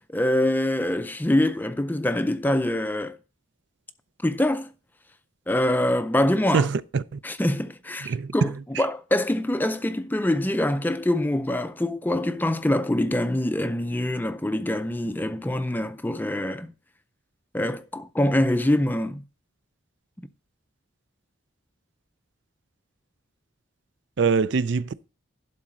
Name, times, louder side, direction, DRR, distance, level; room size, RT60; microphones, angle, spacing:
voice 1, 0.0-3.2 4.2-4.7 5.5-6.7 7.2-16.7 17.5-19.2, left 1 dB, 10° left, 0.4 m, -24 dB
voice 2, 6.5-7.0 8.1-8.5 24.2-25.1, right 5 dB, 60° right, 0.4 m, -23 dB
11.5 x 4.0 x 6.0 m
head